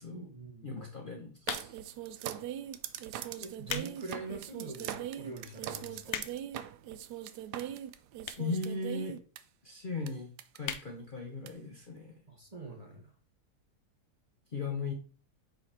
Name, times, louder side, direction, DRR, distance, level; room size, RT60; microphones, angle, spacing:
voice 1, 0.1-0.9 3.4-6.2 12.3-13.1, right 3 dB, 25° right, -1 dB, 1.2 m, -44 dB
voice 2, 0.6-1.8 8.4-9.2 9.6-12.1 14.5-14.9, left 3 dB, 40° left, 1 dB, 0.9 m, -38 dB
sound 1, 1.4-2.0 2.7-2.9 3.4-3.9 4.4-4.5 5.1-5.2 5.4-5.5 5.7-6.6 7.4-7.5 8.2-8.6 8.9-9.0 9.2-9.3 9.5-9.6 9.9-10.1 10.6-10.9 11.3-11.4 11.6-11.7, left 9 dB, 65° left, 0.7 m, -38 dB
sound 2, 1.5-9.4 10.1-10.2 10.4-10.8 11.5-11.6, right 11 dB, 85° right, 1.2 m, -40 dB
5.2 x 4.9 x 4.2 m, 0.38 s
omnidirectional pair, 1.7 m